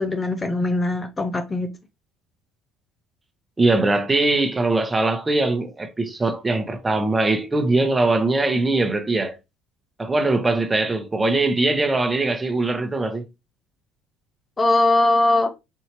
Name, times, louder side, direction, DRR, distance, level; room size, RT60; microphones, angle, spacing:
voice 1, 0.0-1.7 14.6-15.5, left 2 dB, 25° left, 0.6 m, -20 dB
voice 2, 3.6-9.3 10.0-13.2, right 2 dB, 20° right, 1.0 m, -21 dB
4.5 x 2.7 x 3.0 m
supercardioid pair, 80°, 0 cm